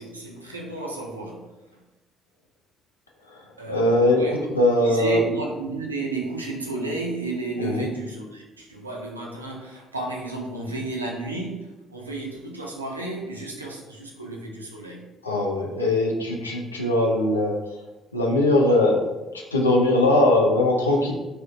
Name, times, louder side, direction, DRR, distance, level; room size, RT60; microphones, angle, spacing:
voice 1, 0.0-1.5 3.6-4.5 4.8-15.1, right 2 dB, 90° right, -1 dB, 0.4 m, -32 dB
voice 2, 3.7-4.2 4.6-5.2 7.6-7.9 15.2-17.6 18.1-19.1 19.3-21.1, left 2 dB, 85° left, -1 dB, 0.4 m, -20 dB
2.7 x 2.1 x 3.6 m, 1.1 s
figure-of-eight pair, 45°, 0 cm